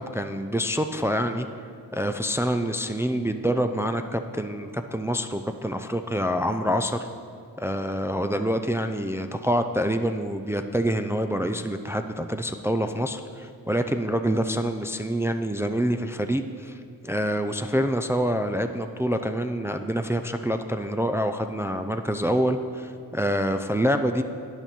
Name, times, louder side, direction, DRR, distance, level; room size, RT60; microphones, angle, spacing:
voice 1, 0.0-1.5 1.9-7.1 7.6-24.2, equal, 5° right, 7 dB, 0.4 m, -26 dB
9.0 x 5.8 x 4.2 m, 2.2 s
supercardioid pair, 45°, 38 cm